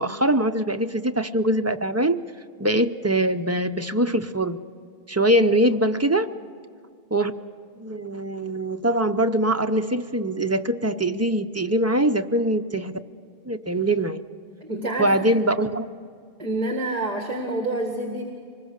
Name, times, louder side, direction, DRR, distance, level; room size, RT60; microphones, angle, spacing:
voice 1, 0.0-2.2 2.6-4.6 5.1-6.3 7.1-7.3 7.8-12.9 13.5-14.2 15.0-15.9, right 1 dB, 20° right, 7 dB, 0.5 m, -22 dB
voice 2, 14.6-15.3 16.4-18.2, right 2 dB, 40° right, 2 dB, 2.1 m, -27 dB
25.0 x 21.0 x 6.5 m, 2.3 s
omnidirectional pair, 1.0 m